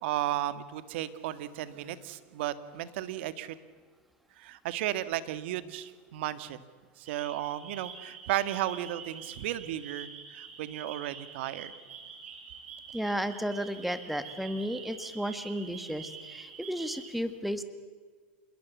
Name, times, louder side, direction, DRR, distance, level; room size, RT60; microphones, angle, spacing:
voice 1, 0.0-3.6 4.4-6.6 7.0-11.7, right 13 dB, 70° right, 14 dB, 1.8 m, -34 dB
sound 1, 7.1-17.1, right 6 dB, 90° right, 4.5 m, -46 dB
voice 2, 12.9-17.6, equal, ahead, 11 dB, 2.0 m, -33 dB
27.0 x 21.5 x 8.3 m, 1.5 s
supercardioid pair, 125°, 6 cm